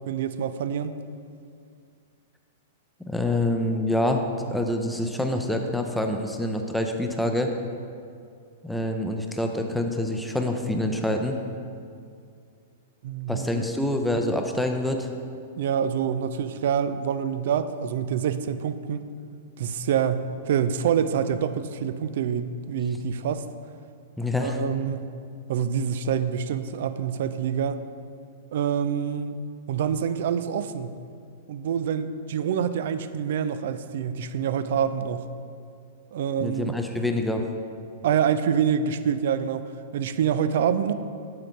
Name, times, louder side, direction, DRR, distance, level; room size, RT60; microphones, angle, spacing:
voice 1, 0.1-0.9 13.0-13.6 15.6-19.0 19.6-23.4 24.4-25.1 25.5-27.8 28.5-29.4 29.7-30.9 31.5-35.2 36.1-36.7 38.0-40.9, right 8 dB, 55° right, 12 dB, 0.3 m, -26 dB
voice 2, 3.1-4.2 4.5-7.5 8.6-11.4 13.3-15.1 24.2-24.6 36.4-37.5, left 1 dB, 5° left, 3 dB, 0.6 m, -26 dB
7.5 x 3.8 x 5.9 m, 2.3 s
figure-of-eight pair, 100°, 0 cm